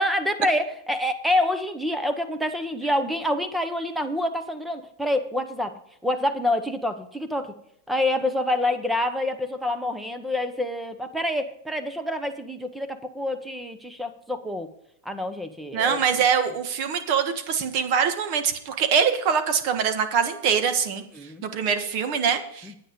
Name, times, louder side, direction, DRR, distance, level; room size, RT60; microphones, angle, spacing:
voice 1, 0.0-5.7 6.0-7.5 7.9-14.7 15.0-16.0 21.0-21.4 22.6-22.8, left 1 dB, 5° right, 9 dB, 0.8 m, -27 dB
voice 2, 15.7-21.0 21.4-22.8, right 7 dB, 40° right, 8 dB, 1.4 m, -23 dB
9.9 x 9.0 x 5.1 m, 0.71 s
supercardioid pair, 160°, 0 cm